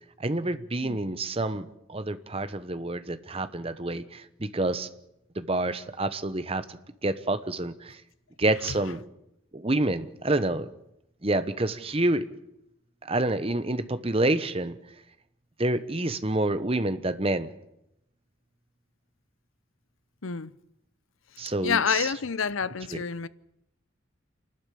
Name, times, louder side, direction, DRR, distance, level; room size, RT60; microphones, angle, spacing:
voice 1, 0.2-4.9 5.3-8.0 8.4-9.0 9.5-10.7 11.2-12.3 13.0-14.8 15.6-17.5 21.4-22.1 22.9-23.0, right 2 dB, 30° right, 1.0 m, -28 dB
voice 2, 21.4-23.3, left 6 dB, 80° left, 0.8 m, -28 dB
28.0 x 12.5 x 8.6 m
head